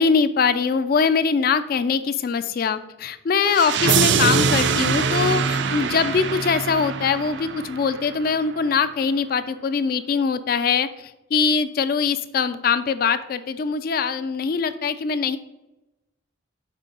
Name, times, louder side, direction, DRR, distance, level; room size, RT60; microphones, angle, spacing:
voice 1, 0.0-15.4, left 5 dB, 50° left, 13 dB, 0.3 m, -22 dB
sound 1, 3.5-8.4, right 6 dB, 65° right, 0.4 m, -23 dB
5.5 x 4.4 x 3.8 m, 0.97 s
head